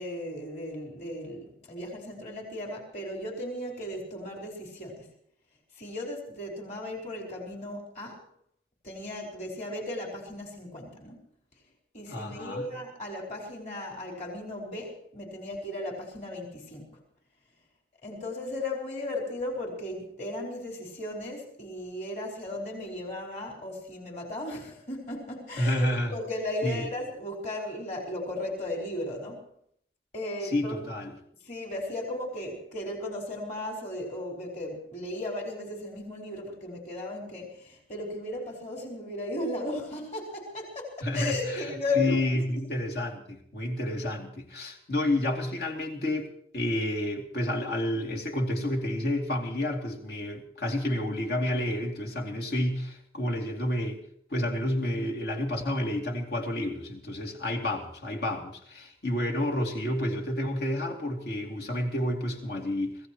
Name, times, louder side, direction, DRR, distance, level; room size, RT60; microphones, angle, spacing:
voice 1, 0.0-5.1 5.7-8.2 8.8-11.2 11.9-17.0 18.0-29.4 30.1-30.8 31.4-42.2 42.5-42.7, left 2 dB, 40° left, 0 dB, 4.8 m, -36 dB
voice 2, 12.1-12.6 25.6-26.1 26.6-26.8 30.5-31.1 41.0-41.7 42.0-46.3 46.5-54.0 54.3-63.0, left 1 dB, 60° left, 0 dB, 2.7 m, -30 dB
26.0 x 16.5 x 3.1 m, 0.65 s
head